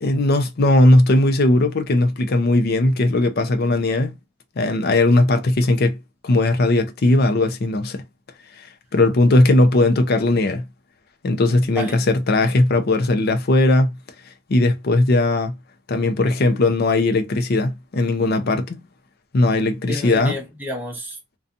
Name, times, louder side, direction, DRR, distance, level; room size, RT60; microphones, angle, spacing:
voice 1, 0.0-4.1 4.6-6.0 6.2-8.0 8.9-10.6 11.2-14.0 14.5-15.5 15.9-18.8 19.3-20.4, left 2 dB, 50° left, 0.5 m, -18 dB
voice 2, 11.5-12.0 19.9-21.4, left 1 dB, 10° right, 0.7 m, -31 dB
2.6 x 2.3 x 2.4 m
head